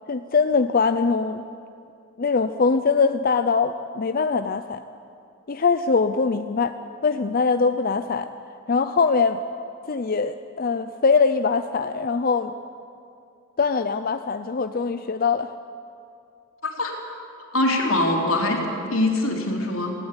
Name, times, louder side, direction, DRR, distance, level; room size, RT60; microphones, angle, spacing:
voice 1, 0.1-1.4 2.2-4.8 5.5-6.7 7.0-8.3 8.7-9.4 9.9-12.5 13.6-15.5, left 4 dB, 45° left, 9 dB, 0.5 m, -22 dB
voice 2, 16.6-16.9 17.5-18.6 18.9-19.9, left 1 dB, 85° left, 1 dB, 3.4 m, -23 dB
18.0 x 16.5 x 9.8 m, 2.5 s
head